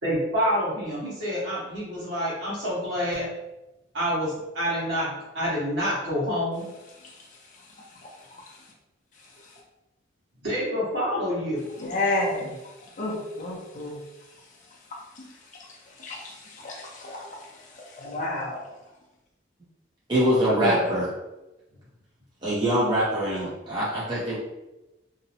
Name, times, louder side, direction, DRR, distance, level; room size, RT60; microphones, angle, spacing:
voice 1, 0.0-3.3 3.9-5.1 5.3-6.6 10.4-11.7 20.6-20.8, equal, 60° right, -7 dB, 1.2 m, -27 dB
voice 2, 8.0-8.6 11.8-14.0 14.9-15.3 15.6-15.7 16.0-18.7, left 2 dB, 40° left, -3 dB, 0.5 m, -32 dB
voice 3, 20.1-21.0 22.4-24.3, equal, 20° right, -9 dB, 0.5 m, -24 dB
2.7 x 2.0 x 2.7 m, 0.99 s
head